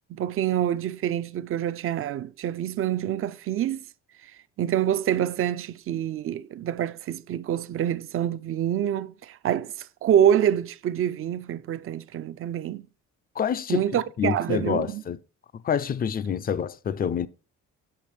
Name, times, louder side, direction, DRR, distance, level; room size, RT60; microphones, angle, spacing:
voice 1, 0.1-3.8 4.2-4.3 4.6-12.9 13.7-15.0, right 10 dB, 45° right, 0.4 m, -26 dB
voice 2, 13.4-13.8 14.2-15.2 15.5-17.3, left 8 dB, 30° left, 0.4 m, -27 dB
6.9 x 5.6 x 3.2 m
cardioid pair, 90°, 30 cm